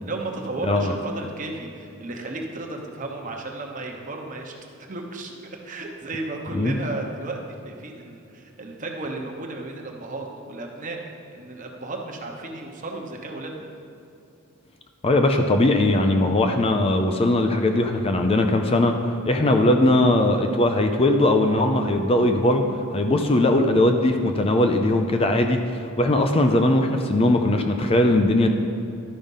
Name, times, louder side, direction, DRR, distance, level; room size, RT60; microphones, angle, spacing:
voice 1, 0.0-4.5 4.9-7.4 7.6-11.0 11.3-13.7, right 2 dB, 35° right, 1 dB, 1.0 m, -34 dB
voice 2, 15.0-18.9 19.2-22.6 22.9-28.5, left 1 dB, 25° left, 5 dB, 0.4 m, -20 dB
12.0 x 5.1 x 5.4 m, 2.7 s
head